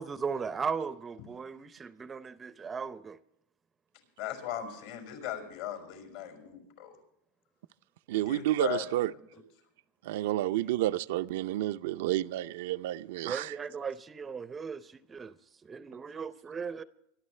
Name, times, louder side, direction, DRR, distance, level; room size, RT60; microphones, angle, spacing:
voice 1, 0.0-3.2 13.2-15.3 15.6-16.8, right 5 dB, 20° right, 0.6 m, -37 dB
voice 2, 4.2-7.0 8.2-8.9, left 10 dB, 70° left, 5.4 m, -38 dB
voice 3, 8.1-9.1 10.0-13.5, right 14 dB, 75° right, 0.5 m, -30 dB
24.5 x 12.0 x 3.2 m
supercardioid pair, 135°, 0 cm